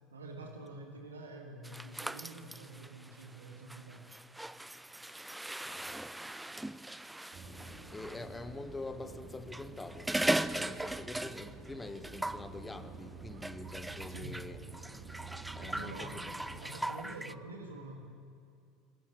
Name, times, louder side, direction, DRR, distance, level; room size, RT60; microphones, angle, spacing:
voice 1, 0.1-4.2 14.1-14.5 15.6-16.2 16.6-18.0, right 2 dB, 80° right, 2.0 m, -47 dB
sound 1, 1.6-8.2 9.3-11.7 11.9-12.5 13.4-17.3, right 1 dB, 5° right, 0.6 m, -39 dB
voice 2, 5.6-6.1 7.5-7.6 7.9-14.6 15.5-16.4, left 2 dB, 15° left, 1.2 m, -45 dB
sound 2, 7.3-16.6, right 3 dB, 45° right, 3.2 m, -49 dB
20.5 x 14.5 x 9.3 m
figure-of-eight pair, 70°, 0 cm